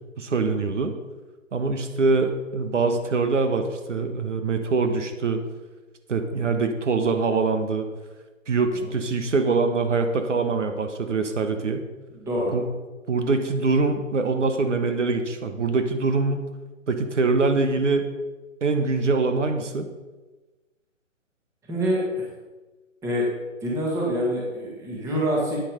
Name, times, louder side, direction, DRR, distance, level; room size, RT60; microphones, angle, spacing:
voice 1, 0.2-0.9 1.5-5.4 6.1-7.9 8.5-11.8 12.5-12.6 13.1-16.5 16.9-18.1 18.6-19.9, right 4 dB, 65° right, 6 dB, 1.4 m, -24 dB
voice 2, 12.1-12.5 21.7-22.2 23.0-23.3 23.6-25.6, equal, 5° right, -4 dB, 1.8 m, -26 dB
9.4 x 8.4 x 5.1 m, 1.2 s
figure-of-eight pair, 150°, 40 cm